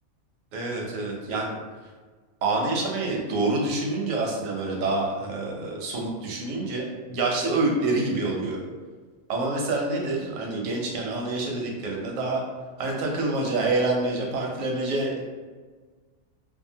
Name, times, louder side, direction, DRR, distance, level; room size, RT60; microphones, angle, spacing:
voice 1, 0.5-1.6 2.4-8.6 9.3-12.4 12.8-15.3, right 2 dB, 85° right, -1 dB, 1.0 m, -27 dB
2.7 x 2.3 x 2.7 m, 1.4 s
omnidirectional pair, 1.4 m